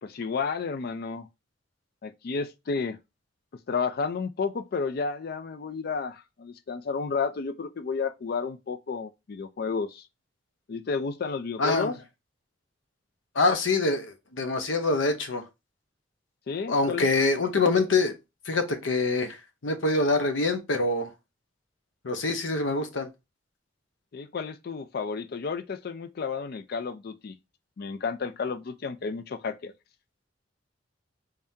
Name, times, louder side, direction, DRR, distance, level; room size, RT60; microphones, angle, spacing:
voice 1, 0.0-1.3 2.0-3.0 3.7-10.1 10.7-12.0 16.5-17.1 24.1-27.4 27.8-29.7, left 5 dB, 55° left, 0.4 m, -31 dB
voice 2, 11.6-11.9 13.4-15.4 16.7-18.1 18.5-19.4 19.6-21.1 22.0-23.1, left 3 dB, 85° left, 0.7 m, -25 dB
3.5 x 3.5 x 2.7 m
head